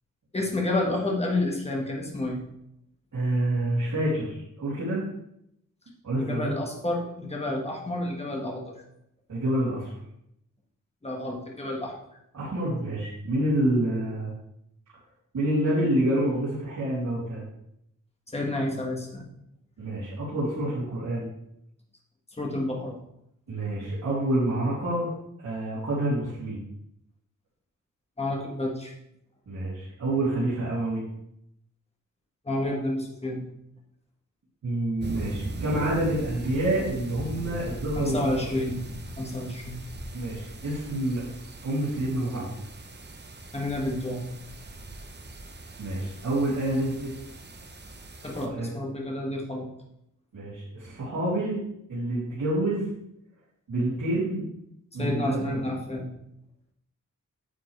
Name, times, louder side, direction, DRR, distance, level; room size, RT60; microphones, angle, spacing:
voice 1, 0.3-2.4 6.1-8.8 11.0-11.9 18.3-19.2 22.3-23.0 28.2-28.9 32.4-33.4 37.9-38.8 39.2-39.8 43.5-44.3 48.2-49.7 55.0-56.1, left 1 dB, 20° left, -1 dB, 1.7 m, -30 dB
voice 2, 3.1-5.0 6.0-6.5 9.3-10.0 12.3-14.3 15.3-17.4 19.8-21.3 23.5-25.1 25.4-26.6 29.5-31.0 34.6-38.3 40.1-41.2 41.6-42.5 45.8-47.1 48.4-48.7 50.3-51.6 51.9-52.9 53.7-54.4 54.9-55.6, right 1 dB, 80° right, -11 dB, 3.2 m, -27 dB
sound 1, 35.0-48.5, right 2 dB, 35° right, 0.9 m, -40 dB
9.7 x 7.3 x 3.4 m, 0.76 s
wide cardioid pair, 170°, 31 cm